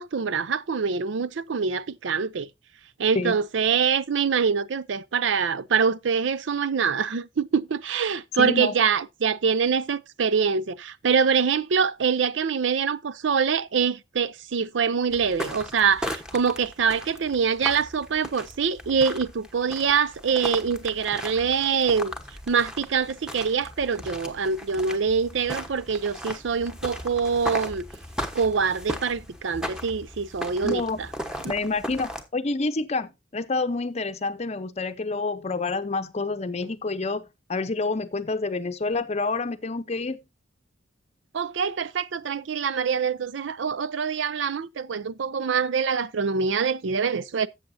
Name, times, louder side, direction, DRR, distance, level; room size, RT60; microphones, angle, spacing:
voice 1, 0.0-2.5 3.0-22.1 22.5-27.8 28.3-30.8 41.3-47.5, right 6 dB, 70° right, 0.5 m, -24 dB
voice 2, 8.4-8.7 30.6-31.0 31.5-40.2, left 3 dB, 35° left, 0.7 m, -28 dB
Footsteps in the desert, 15.1-32.2, equal, 5° right, 1.1 m, -37 dB
13.5 x 7.8 x 2.7 m
head